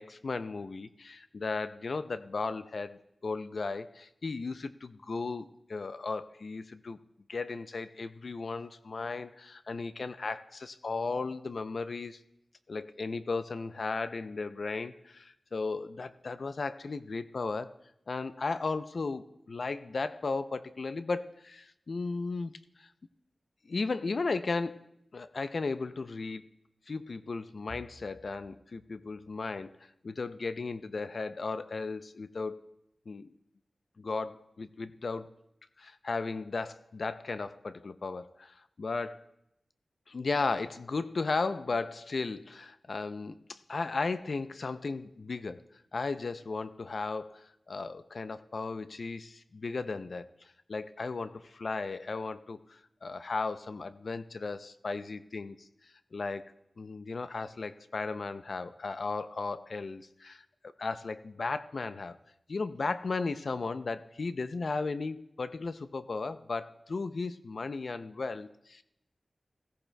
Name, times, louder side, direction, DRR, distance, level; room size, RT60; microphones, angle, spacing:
voice 1, 0.0-7.0 7.3-12.2 12.7-17.7 18.1-22.9 23.6-26.5 26.9-29.7 30.0-32.6 33.1-33.3 34.0-35.3 35.8-39.3 40.1-45.6 45.9-55.7 56.1-56.4 56.8-60.4 60.8-62.2 62.5-68.8, left 3 dB, 70° left, 12 dB, 0.4 m, -35 dB
16.5 x 15.0 x 2.2 m, 0.80 s
wide cardioid pair, 95°, 0 cm